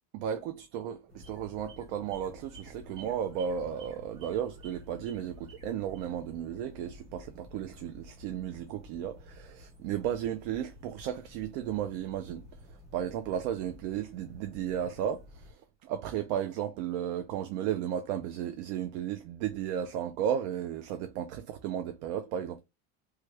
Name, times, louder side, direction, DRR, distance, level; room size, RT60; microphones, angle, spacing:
voice 1, 0.1-22.6, right 9 dB, 70° right, 0.5 m, -34 dB
Morning Birds Cardinal short, 1.1-15.5, left 1 dB, 20° right, 1.1 m, -52 dB
3.0 x 2.3 x 3.2 m
cardioid pair, 175°, 32 cm